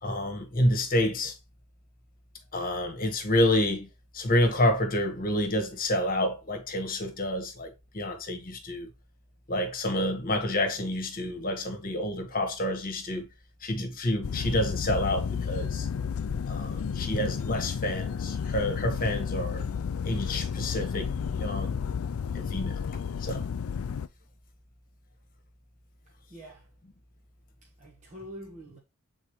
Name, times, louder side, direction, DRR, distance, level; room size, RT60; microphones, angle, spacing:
voice 1, 0.0-1.4 2.5-3.9 4.1-8.9 9.5-13.3 13.6-15.9 16.5-19.7 20.0-21.8 22.3-23.5, left 1 dB, 40° left, 1.4 m, -28 dB
sound 1, 14.2-24.1, left 6 dB, 70° left, 0.4 m, -32 dB
voice 2, 26.0-26.7 27.6-28.8, equal, 35° right, 1.4 m, -46 dB
8.1 x 4.0 x 3.1 m
head